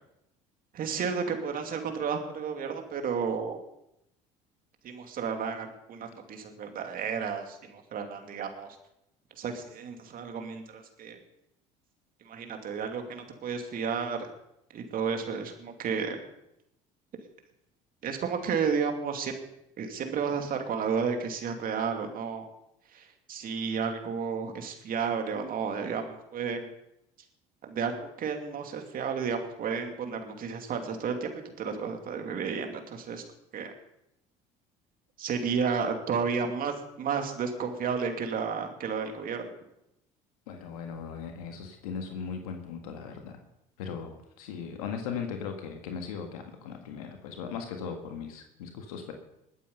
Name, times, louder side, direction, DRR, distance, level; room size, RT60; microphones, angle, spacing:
voice 1, 0.7-3.6 4.8-8.8 9.4-11.2 12.2-14.3 14.7-16.2 18.0-19.4 19.8-22.4 22.9-26.7 27.6-33.2 33.5-33.7 35.2-39.5, right 6 dB, 50° right, 5 dB, 2.6 m, -32 dB
voice 2, 40.5-43.4 43.8-49.1, left 6 dB, 85° left, 4 dB, 1.7 m, -38 dB
21.0 x 8.4 x 5.5 m, 0.82 s
hypercardioid pair, 75°, 18 cm